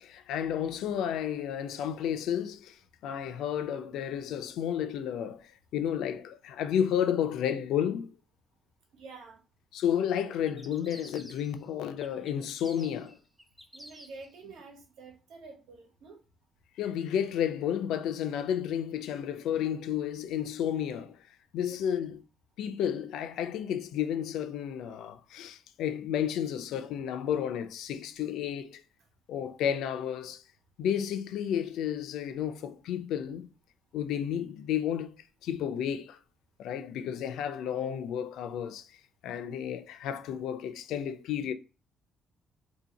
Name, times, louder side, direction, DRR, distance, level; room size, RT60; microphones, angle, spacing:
voice 1, 0.0-8.1 9.7-13.2 16.8-22.2 22.6-28.8 29.3-30.4 30.8-33.5 33.9-36.2 36.6-41.5, left 9 dB, 85° left, 0.4 m, -32 dB
voice 2, 8.9-9.4 13.7-16.2 21.7-22.1, right 4 dB, 85° right, 1.2 m, -49 dB
sound 1, 10.5-11.7 12.0-14.3, equal, 5° right, 0.4 m, -51 dB
2.8 x 2.7 x 3.9 m
cardioid pair, 170°, 0 cm